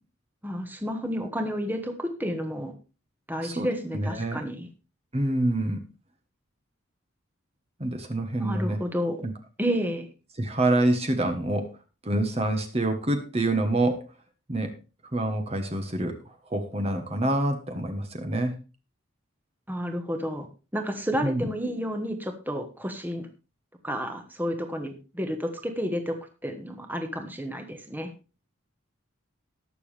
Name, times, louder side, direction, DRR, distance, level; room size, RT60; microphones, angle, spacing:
voice 1, 0.4-2.7 3.3-4.7 8.4-9.2 9.6-10.1 19.7-20.5 20.7-23.3 23.8-26.1 26.4-28.1, equal, 10° right, 5 dB, 1.4 m, -31 dB
voice 2, 3.9-4.4 5.1-5.8 7.8-8.8 9.2-9.3 10.4-11.7 12.0-14.1 14.5-14.8 15.1-18.6 21.2-21.5, right 1 dB, 30° right, 6 dB, 1.4 m, -26 dB
19.0 x 7.0 x 3.4 m, 0.31 s
head